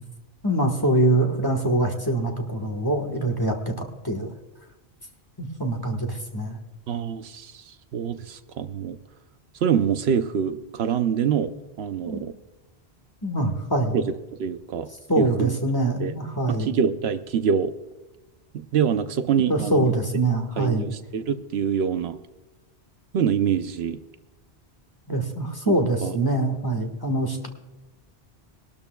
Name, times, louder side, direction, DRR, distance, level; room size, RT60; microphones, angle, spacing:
voice 1, 0.4-4.3 5.4-6.6 12.0-12.2 13.2-14.0 15.1-16.7 19.5-20.9 25.1-27.5, right 1 dB, 20° left, 3 dB, 1.4 m, -24 dB
voice 2, 6.9-9.0 9.6-11.5 11.8-12.3 13.9-14.0 14.4-14.9 15.2-15.6 16.0-16.1 16.5-17.7 18.5-19.8 20.6-22.2 23.1-24.0 25.7-25.8 26.0-26.1, right 7 dB, 75° right, 10 dB, 0.9 m, -25 dB
21.5 x 12.5 x 2.3 m, 1.0 s
omnidirectional pair, 1.1 m